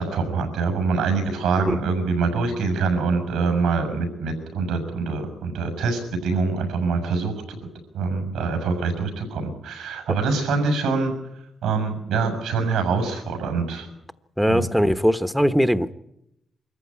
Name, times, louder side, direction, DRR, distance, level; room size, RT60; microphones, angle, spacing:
voice 1, 0.0-7.3 7.9-11.1 11.6-13.9 14.5-14.7, right 4 dB, 90° right, 7 dB, 6.7 m, -24 dB
voice 2, 14.4-15.9, equal, ahead, 10 dB, 1.1 m, -20 dB
24.5 x 14.5 x 9.9 m, 0.84 s
supercardioid pair, 50°, 0 cm